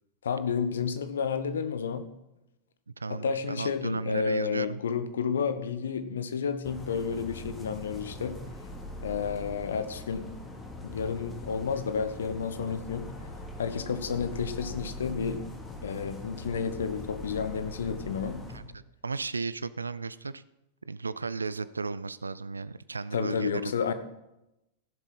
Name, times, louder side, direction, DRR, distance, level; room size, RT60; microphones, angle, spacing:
voice 1, 0.2-2.0 3.1-8.4 9.0-10.2 10.8-13.1 13.6-15.4 15.8-18.4 23.1-23.9, left 6 dB, 65° left, 11 dB, 1.0 m, -31 dB
voice 2, 2.9-4.8 18.5-20.4 20.9-23.7, right 4 dB, 80° right, 17 dB, 0.4 m, -35 dB
sound 1, 6.6-18.6, left 1 dB, 15° left, 2.5 m, -42 dB
15.0 x 7.4 x 5.4 m, 0.91 s
figure-of-eight pair, 90°, 0 cm